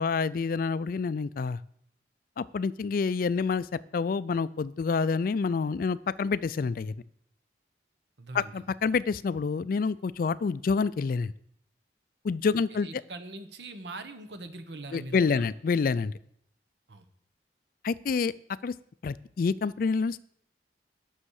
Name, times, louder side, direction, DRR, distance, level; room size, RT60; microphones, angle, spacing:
voice 1, 0.0-1.6 2.4-6.9 8.3-11.3 12.2-12.9 14.9-16.1 17.8-18.3 18.6-18.7 19.0-20.2, left 5 dB, 50° left, 18 dB, 0.3 m, -28 dB
voice 2, 8.2-8.6 12.7-15.5 16.9-17.0, right 2 dB, 70° right, 9 dB, 1.1 m, -42 dB
10.0 x 6.4 x 6.4 m, 0.70 s
head